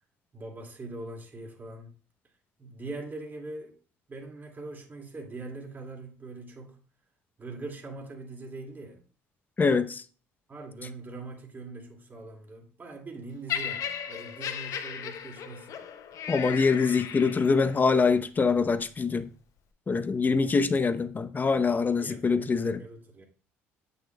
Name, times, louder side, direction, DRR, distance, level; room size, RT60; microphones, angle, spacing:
voice 1, 0.3-1.9 2.6-3.7 4.1-6.8 7.4-9.0 10.5-15.8 21.7-23.3, right 2 dB, 30° right, 2.1 m, -42 dB
voice 2, 9.6-10.0 16.3-19.3 19.9-22.8, left 4 dB, 30° left, 0.7 m, -24 dB
Laughter, 13.5-17.7 18.5-18.7, left 8 dB, 60° left, 0.7 m, -36 dB
8.1 x 6.7 x 2.2 m
supercardioid pair, 70°, 6 cm